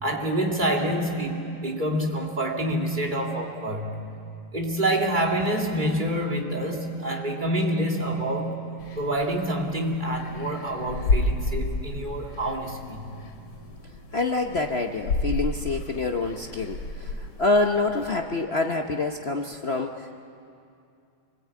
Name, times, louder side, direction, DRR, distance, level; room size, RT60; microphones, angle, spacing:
voice 1, 0.0-4.0 4.5-8.6 9.0-13.1, right 1 dB, 20° right, 0 dB, 2.5 m, -27 dB
sound 1, 8.8-18.2, left 2 dB, 85° left, 3.3 m, -32 dB
voice 2, 14.1-20.2, left 3 dB, 55° left, 3 dB, 0.6 m, -26 dB
27.0 x 20.5 x 8.5 m, 2.5 s
omnidirectional pair, 2.4 m